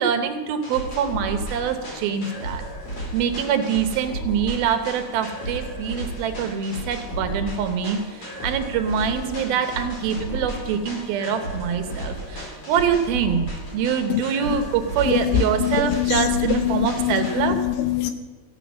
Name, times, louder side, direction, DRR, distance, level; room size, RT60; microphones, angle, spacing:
voice 1, 0.0-2.6 3.1-8.0 8.4-13.5 13.7-17.6, right 7 dB, 75° right, 7 dB, 2.8 m, -24 dB
sound 1, 0.6-17.4, right 1 dB, 40° left, 5.7 m, -34 dB
voice 2, 15.0-18.1, left 12 dB, 75° left, 8 dB, 2.3 m, -23 dB
15.0 x 8.8 x 6.1 m, 1.3 s
omnidirectional pair, 4.4 m